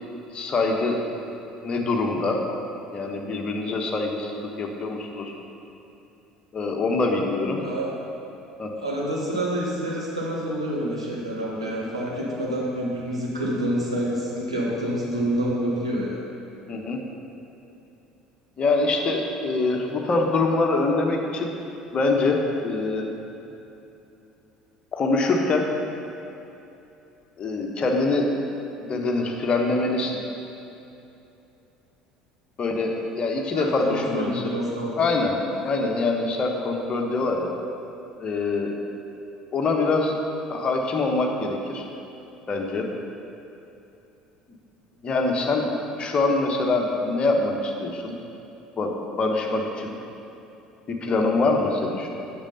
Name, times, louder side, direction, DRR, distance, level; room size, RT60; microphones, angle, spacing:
voice 1, 0.3-1.0 1.6-2.4 2.9-5.3 6.5-7.6 8.6-8.7 16.7-17.0 18.6-21.5 21.9-23.1 24.9-25.7 27.4-28.3 28.8-30.2 32.6-34.5 34.9-35.3 35.6-37.5 38.2-38.7 39.5-40.1 40.5-41.8 42.5-42.9 45.0-45.7 46.0-48.1 48.8-49.9 50.9-52.1, left 3 dB, 35° left, 1 dB, 1.2 m, -24 dB
voice 2, 8.7-16.2 33.5-35.0 45.0-45.1, right 1 dB, 85° right, -5 dB, 1.5 m, -27 dB
8.7 x 6.3 x 5.5 m, 2.9 s
figure-of-eight pair, 60°, 3 cm